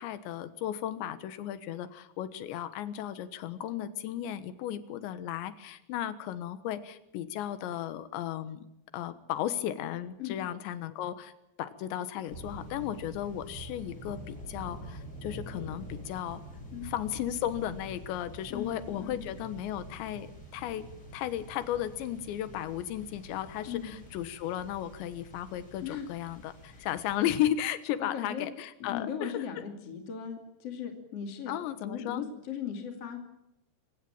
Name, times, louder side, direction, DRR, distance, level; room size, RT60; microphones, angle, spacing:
voice 1, 0.0-8.7 8.9-11.3 11.6-16.4 16.8-29.6 31.5-32.2, left 11 dB, 80° left, 12 dB, 3.5 m, -35 dB
sound 1, 12.3-27.2, right 1 dB, 20° left, 8.0 m, -46 dB
voice 2, 18.5-19.2 23.6-24.0 25.8-26.2 26.7-26.9 28.0-28.5 28.8-31.5 31.8-33.2, left 8 dB, 40° left, 4 dB, 3.0 m, -38 dB
26.0 x 16.5 x 8.9 m, 0.87 s
omnidirectional pair, 5.3 m